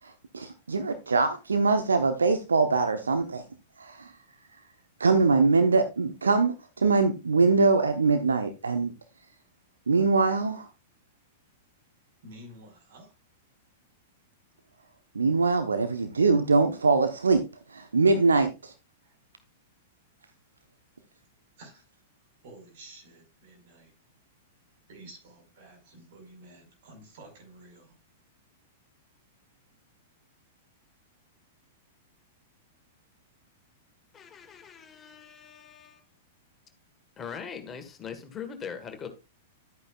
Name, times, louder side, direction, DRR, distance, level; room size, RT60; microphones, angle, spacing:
voice 1, 0.0-3.5 3.8-4.2 4.5-4.6 5.0-8.9 9.9-10.7 15.1-18.7, right 4 dB, 75° right, 1.0 m, -23 dB
voice 2, 12.2-13.1 19.0-19.2 21.6-21.9 22.4-23.9 24.9-28.0, right 1 dB, 50° right, 5.4 m, -50 dB
voice 3, 34.1-36.0 37.2-39.1, left 7 dB, 20° left, 1.7 m, -41 dB
12.0 x 8.9 x 2.5 m
figure-of-eight pair, 100°, 0 cm